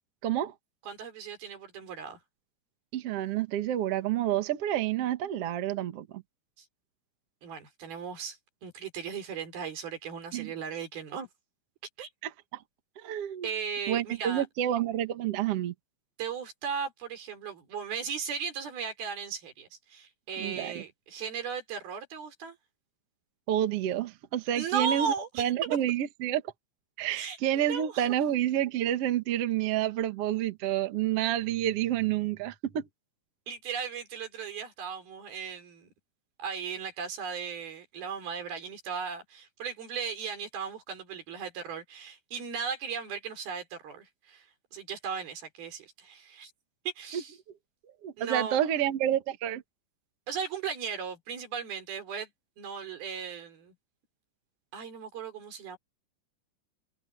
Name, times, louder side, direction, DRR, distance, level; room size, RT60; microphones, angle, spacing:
voice 1, 0.2-0.5 2.9-6.2 10.3-10.5 12.2-12.6 13.0-13.5 13.9-15.7 20.4-20.8 23.5-26.4 27.0-32.9 47.1-47.2 48.0-49.6, right 11 dB, 80° right, 1.3 m, -29 dB
voice 2, 0.8-2.2 6.6-6.7 7.4-8.4 8.6-11.3 12.0-12.1 13.4-14.5 16.2-22.6 24.5-25.5 27.1-28.1 33.5-35.9 36.4-46.5 46.9-47.4 48.2-48.7 50.3-52.3 52.6-53.7 54.7-55.8, right 6 dB, 60° right, 5.8 m, -36 dB
omnidirectional pair, 5.1 m